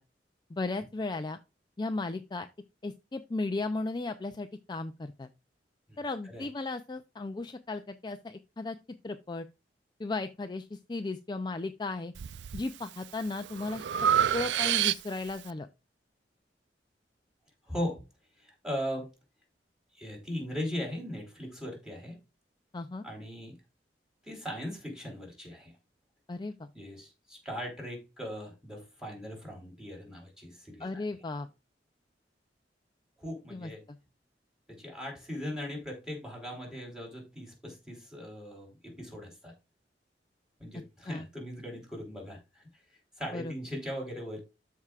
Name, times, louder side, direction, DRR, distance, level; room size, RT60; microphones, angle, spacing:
voice 1, 0.5-1.4 1.8-2.5 2.8-5.3 6.0-8.8 9.0-9.5 10.0-12.1 12.5-15.7 22.7-23.1 26.3-26.7 30.8-31.5 33.5-33.7 41.1-41.2 43.3-43.5, left 3 dB, 25° left, 0.4 m, -35 dB
voice 2, 5.9-6.5 17.6-18.0 18.4-19.1 19.9-22.2 23.0-23.6 24.2-25.7 26.7-31.0 33.2-33.8 34.7-39.5 40.6-42.6 43.2-44.4, equal, 5° right, 3.5 m, -39 dB
Breathing, 12.1-12.6 13.1-15.4, right 9 dB, 85° right, 0.4 m, -28 dB
13.0 x 4.7 x 2.4 m
head